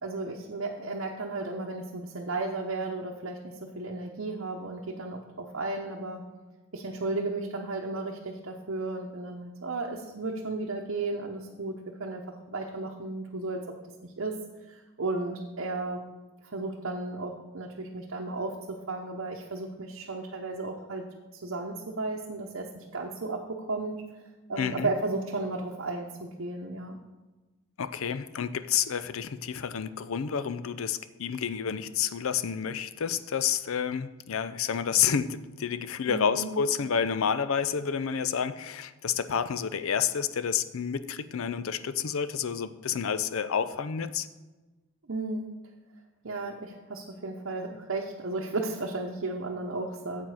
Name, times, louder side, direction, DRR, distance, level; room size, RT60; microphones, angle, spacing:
voice 1, 0.0-6.2 6.7-11.7 12.0-13.6 14.0-14.4 14.7-16.0 16.4-21.0 21.4-23.9 24.5-27.0 36.1-36.5 45.1-45.5 46.2-50.3, right 2 dB, 65° right, 0 dB, 0.8 m, -34 dB
voice 2, 24.6-24.9 27.8-44.3, left 7 dB, 75° left, 13 dB, 0.5 m, -29 dB
9.0 x 7.5 x 4.8 m, 1.2 s
head